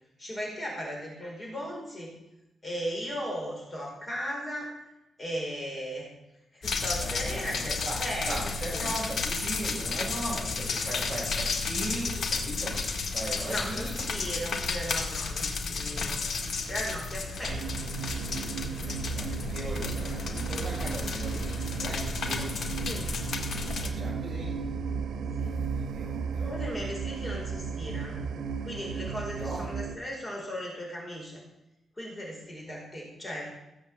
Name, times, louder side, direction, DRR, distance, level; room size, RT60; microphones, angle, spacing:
voice 1, 0.2-2.1 2.6-4.7 5.2-6.0 6.5-7.7 8.0-8.4 8.7-8.9 10.0-10.1 13.4-16.2 16.7-17.9 22.9-23.1 25.4-25.6 26.5-28.2 28.6-31.4 32.0-33.5, equal, 20° left, -1 dB, 4.7 m, -37 dB
sound 1, 6.6-23.9, left 4 dB, 65° left, 1.9 m, -32 dB
voice 2, 7.0-14.8 16.5-16.7 18.8-22.5 23.8-24.6 25.4-26.7 29.4-29.6, right 1 dB, 10° right, -6 dB, 6.7 m, -39 dB
sound 2, 17.5-30.0, right 6 dB, 85° right, 1.0 m, -35 dB
16.5 x 7.7 x 7.6 m, 0.90 s
wide cardioid pair, 155°, 0 cm